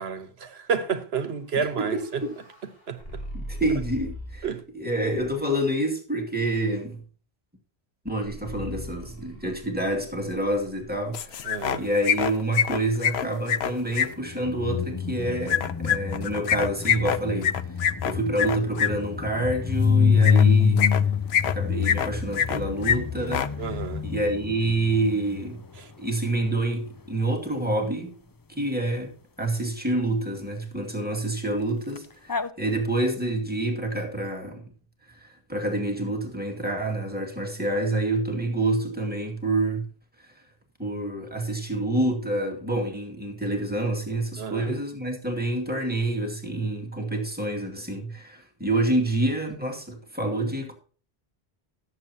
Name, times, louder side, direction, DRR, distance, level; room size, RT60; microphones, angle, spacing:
voice 1, 0.0-2.2 2.9-3.2 4.4-4.6 11.4-11.9 23.6-24.0 25.8-25.9 44.4-44.7, right 6 dB, 80° right, 1.3 m, -30 dB
sound 1, 1.3-4.7 5.1-5.7 8.2-12.3, left 1 dB, 65° left, 4.6 m, -41 dB
voice 2, 1.6-2.3 3.3-4.5 4.7-7.0 8.0-17.6 18.0-20.9 21.4-23.5 24.0-25.6 26.0-28.1 28.5-34.7 35.2-39.9 40.2-40.3 40.8-50.7, right 1 dB, 10° right, 2.2 m, -27 dB
sound 2, 11.1-11.8 12.0-14.1 15.5-18.9 20.2-20.4 20.8-21.5 21.8-22.6 22.8-23.0 23.2-23.5, left 8 dB, 85° left, 0.9 m, -24 dB
sound 3, 14.2-25.8 32.0-32.1 32.3-32.5, left 6 dB, 30° left, 0.4 m, -26 dB
17.5 x 7.7 x 2.9 m
omnidirectional pair, 1.1 m